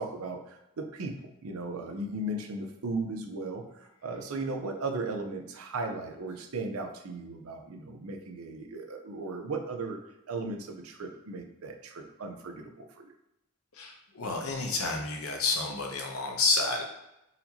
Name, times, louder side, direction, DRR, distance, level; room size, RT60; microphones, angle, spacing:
voice 1, 0.0-13.1, right 2 dB, 75° right, 4 dB, 0.5 m, -36 dB
voice 2, 13.7-16.8, left 3 dB, 75° left, 1 dB, 0.7 m, -30 dB
4.1 x 2.7 x 2.8 m, 0.88 s
head